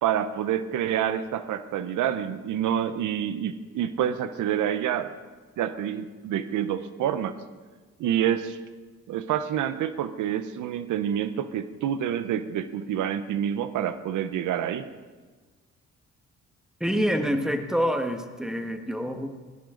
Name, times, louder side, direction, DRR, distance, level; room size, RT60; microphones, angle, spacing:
voice 1, 0.0-5.1 5.6-7.4 8.0-8.6 9.1-14.9, right 10 dB, 80° right, 12 dB, 0.9 m, -27 dB
voice 2, 16.8-19.4, equal, ahead, 6 dB, 1.6 m, -27 dB
20.0 x 17.5 x 3.9 m, 1.4 s
cardioid pair, 90°, 30 cm